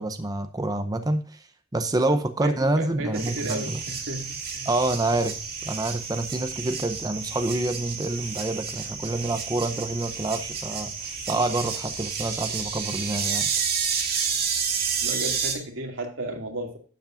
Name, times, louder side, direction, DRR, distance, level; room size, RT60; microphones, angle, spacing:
voice 1, 0.0-1.4 1.7-3.8 4.6-5.4 5.6-10.9 11.3-13.5, right 2 dB, 20° right, 0.6 m, -27 dB
voice 2, 2.0-4.7 15.0-16.8, right 1 dB, 85° right, 2.3 m, -34 dB
sound 1, 3.1-15.5, right 6 dB, 55° right, 2.2 m, -30 dB
12.0 x 8.1 x 2.5 m
head